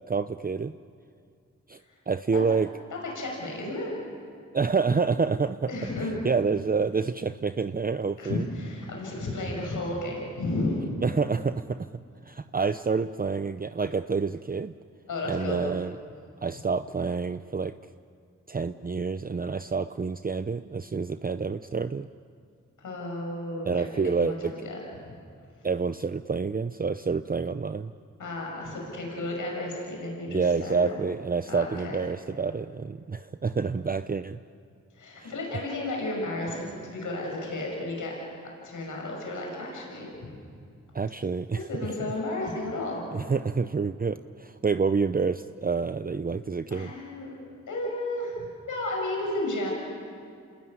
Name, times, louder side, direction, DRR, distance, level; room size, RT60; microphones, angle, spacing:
voice 1, 0.1-0.7 1.7-1.8 2.1-2.7 4.5-5.7 6.0-8.5 11.0-11.9 12.2-14.7 15.3-16.0 16.4-17.7 18.5-22.1 23.7-24.5 25.6-27.9 30.3-34.4 35.2-35.3 40.9-41.6 43.1-46.9, right 5 dB, 30° right, 11 dB, 0.7 m, -28 dB
voice 2, 3.0-3.9 5.7-6.1 8.2-10.8 15.1-15.6 22.8-24.3 24.6-24.8 28.2-30.9 31.5-32.0 34.9-38.1 38.6-40.1 41.5-43.0 46.7-47.3 47.7-49.7, left 2 dB, 85° left, -1 dB, 6.7 m, -33 dB
28.0 x 20.5 x 9.7 m, 2.3 s
cardioid pair, 50°, 30 cm